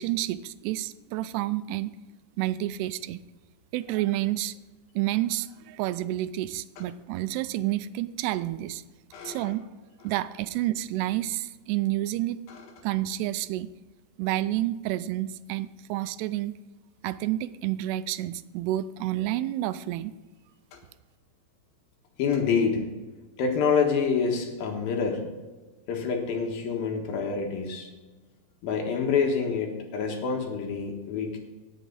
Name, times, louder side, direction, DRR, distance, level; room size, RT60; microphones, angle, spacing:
voice 1, 0.0-1.9 2.4-3.2 3.7-4.6 5.0-8.8 9.2-9.6 10.0-12.4 12.8-13.7 14.2-16.6 17.0-20.1, right 14 dB, 85° right, 14 dB, 2.6 m, -29 dB
voice 2, 9.1-9.5 22.2-22.9 23.4-25.3 25.9-27.9 28.6-31.4, left 5 dB, 65° left, 2 dB, 3.1 m, -27 dB
17.5 x 7.0 x 4.0 m, 1.2 s
omnidirectional pair, 4.7 m